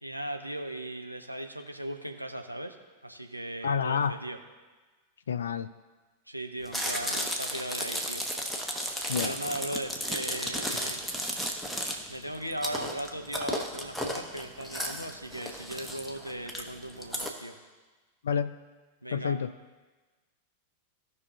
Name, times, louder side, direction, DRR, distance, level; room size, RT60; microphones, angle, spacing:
voice 1, 0.0-2.8 3.0-4.4 6.3-8.3 9.2-11.0 12.1-17.6 19.0-19.4, right 1 dB, 90° right, 4 dB, 0.7 m, -38 dB
voice 2, 3.6-4.1 5.3-5.7 9.1-9.3 18.2-18.6 19.1-19.5, left 6 dB, 65° left, 11 dB, 0.3 m, -29 dB
Chewing mastication, 6.7-17.3, equal, ahead, 1.0 m, -34 dB
16.0 x 5.5 x 2.7 m, 1.3 s
figure-of-eight pair, 90°, 0 cm